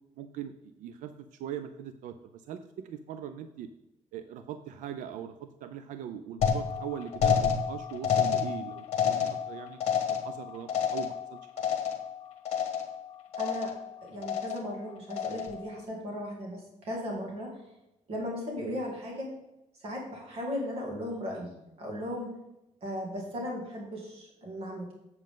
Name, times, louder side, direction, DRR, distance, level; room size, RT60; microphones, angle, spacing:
voice 1, 0.2-1.1 1.4-3.7 4.1-5.3 5.6-9.8 10.1-11.4, right 9 dB, 75° right, 10 dB, 0.5 m, -41 dB
sound 1, 6.4-12.2 12.5-13.0 13.3-13.9 14.2-14.7 15.1-15.7, left 7 dB, 50° left, 1.3 m, -29 dB
voice 2, 13.4-13.7 14.0-17.5 18.1-19.3 19.8-22.3 22.8-24.9, equal, 50° right, -1 dB, 2.3 m, -36 dB
7.8 x 7.4 x 3.7 m, 0.92 s
cardioid pair, 180°, 13 cm